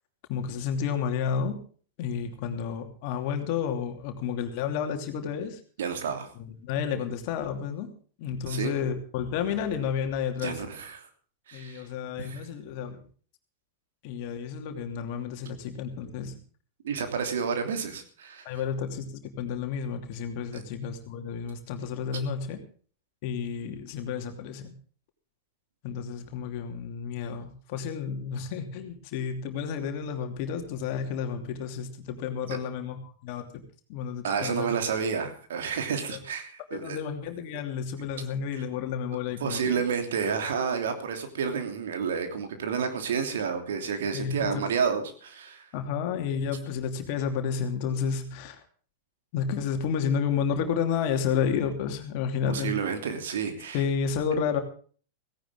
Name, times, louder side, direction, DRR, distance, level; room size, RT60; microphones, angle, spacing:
voice 1, 0.3-1.6 2.0-5.6 6.4-7.9 8.2-10.6 11.5-13.0 14.0-16.4 18.4-19.0 19.4-22.6 23.2-24.7 25.8-33.6 33.9-34.7 36.1-36.2 36.7-39.8 44.1-44.6 45.7-48.6 49.3-52.7 53.7-54.6, left 7 dB, 45° left, 5 dB, 2.9 m, -31 dB
voice 2, 5.8-6.3 8.5-8.7 10.4-11.0 11.5-11.8 12.2-12.4 16.8-18.5 32.5-32.6 34.2-37.0 38.5-38.6 39.4-45.6 52.5-53.8, right 6 dB, 60° right, 6 dB, 3.0 m, -30 dB
17.5 x 17.0 x 3.7 m, 0.44 s
figure-of-eight pair, 90°, 0 cm